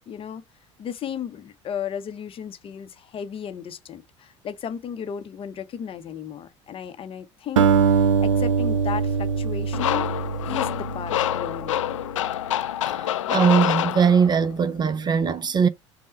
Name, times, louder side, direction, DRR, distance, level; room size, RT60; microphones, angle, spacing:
voice 1, 0.1-0.4 0.8-10.1 10.4-11.8, left 8 dB, 35° left, 0.6 m, -35 dB
Acoustic guitar, 7.6-12.0, right 6 dB, 80° right, 0.5 m, -23 dB
sound 1, 9.7-14.5, left 12 dB, 75° left, 0.4 m, -26 dB
voice 2, 13.3-15.7, right 6 dB, 25° right, 0.4 m, -20 dB
5.2 x 2.1 x 3.8 m
figure-of-eight pair, 70°, 16 cm